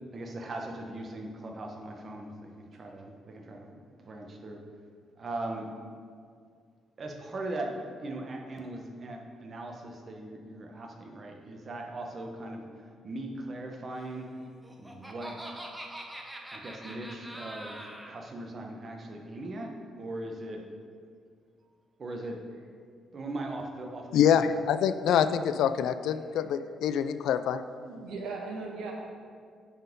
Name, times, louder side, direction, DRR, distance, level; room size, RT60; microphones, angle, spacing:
voice 1, 0.1-4.6 5.2-5.7 7.0-14.3 14.8-15.6 16.5-20.6 22.0-22.4 23.1-24.3, right 2 dB, 40° right, 2 dB, 1.2 m, -39 dB
Laughter, 14.4-18.2, right 1 dB, 10° right, 0.9 m, -43 dB
voice 2, 24.1-27.6, left 8 dB, 80° left, 12 dB, 0.3 m, -25 dB
voice 3, 27.8-28.9, right 3 dB, 85° right, -1 dB, 1.5 m, -38 dB
9.1 x 4.3 x 5.3 m, 2.1 s
cardioid pair, 90°, 0 cm